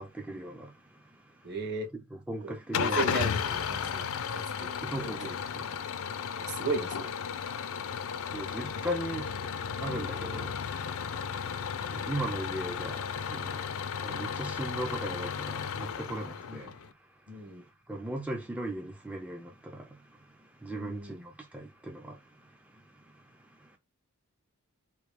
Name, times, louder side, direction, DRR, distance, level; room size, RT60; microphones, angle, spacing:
voice 1, 0.0-1.5 1.9-3.0 4.8-5.8 6.4-6.7 8.2-23.8, right 1 dB, 5° right, 0.4 m, -39 dB
voice 2, 1.4-1.9 2.4-4.0 4.3-5.3 6.4-7.1 16.5-16.6 17.3-17.6 20.7-21.2, right 3 dB, 50° right, 1.1 m, -36 dB
Engine starting / Idling, 2.7-16.9, left 6 dB, 65° left, 0.4 m, -34 dB
3.8 x 3.0 x 3.5 m
head